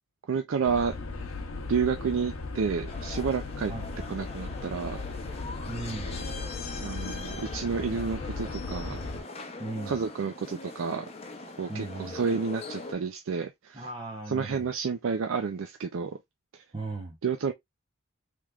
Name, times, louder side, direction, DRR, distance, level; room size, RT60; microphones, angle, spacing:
voice 1, 0.3-0.9 1.7-3.7 4.1-5.0 6.8-9.0 9.9-11.1 11.6-13.9 14.3-16.1 16.5-16.6 17.2-17.5, right 5 dB, 75° right, 0.4 m, -30 dB
sound 1, 0.6-9.2, left 3 dB, 85° left, 0.7 m, -37 dB
sound 2, 2.9-12.9, left 3 dB, 30° left, 0.6 m, -42 dB
voice 2, 5.7-6.2 9.6-10.0 11.7-12.2 13.7-14.7 16.7-17.2, right 2 dB, 25° right, 0.8 m, -37 dB
3.4 x 3.1 x 2.3 m
head